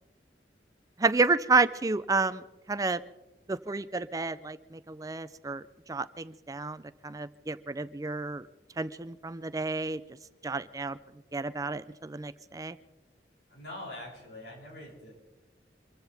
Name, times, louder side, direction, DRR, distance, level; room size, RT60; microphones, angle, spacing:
voice 1, 1.0-2.4 2.7-3.0 3.5-5.6 5.9-8.4 8.8-10.0 10.4-11.0 11.3-12.8, right 3 dB, 20° right, 14 dB, 0.4 m, -30 dB
voice 2, 13.5-15.1, left 1 dB, 80° left, -3 dB, 7.4 m, -43 dB
25.5 x 15.5 x 3.5 m, 1.1 s
head